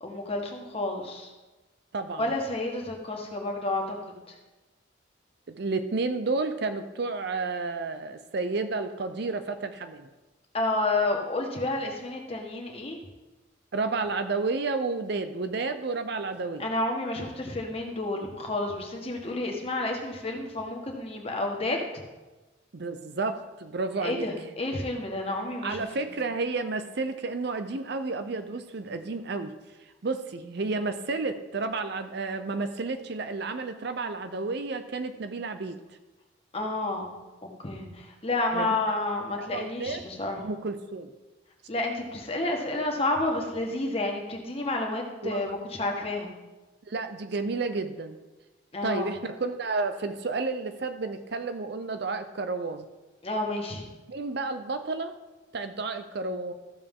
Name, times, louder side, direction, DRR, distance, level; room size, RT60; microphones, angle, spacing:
voice 1, 0.0-1.3 2.2-4.0 4.3-4.4 10.5-13.0 16.6-21.8 24.0-25.8 36.5-37.1 37.6-40.5 41.7-46.3 48.7-49.1 53.2-53.8, left 2 dB, 30° left, 1 dB, 1.5 m, -30 dB
voice 2, 1.9-2.3 5.5-10.1 13.7-16.7 22.7-24.3 25.6-29.5 30.0-35.8 38.5-39.0 39.4-40.0 40.4-41.1 45.2-45.4 46.9-48.2 48.8-52.9 54.1-55.2 55.5-56.5, right 3 dB, 55° right, 9 dB, 0.6 m, -31 dB
14.5 x 6.7 x 3.8 m, 1.1 s
head